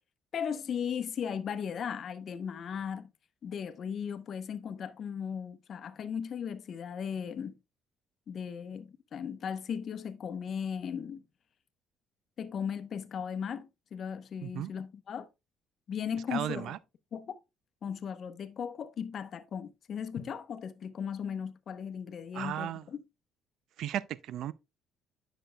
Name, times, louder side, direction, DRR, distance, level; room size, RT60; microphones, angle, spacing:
voice 1, 0.3-3.1 3.4-7.6 8.3-11.2 12.4-15.3 15.9-16.7 17.1-17.4 17.8-23.0, left 7 dB, 50° left, 0.8 m, -37 dB
voice 2, 16.3-16.8 22.3-22.8 23.8-24.5, right 11 dB, 70° right, 0.3 m, -35 dB
10.0 x 6.0 x 2.2 m
cardioid pair, 115°, 0 cm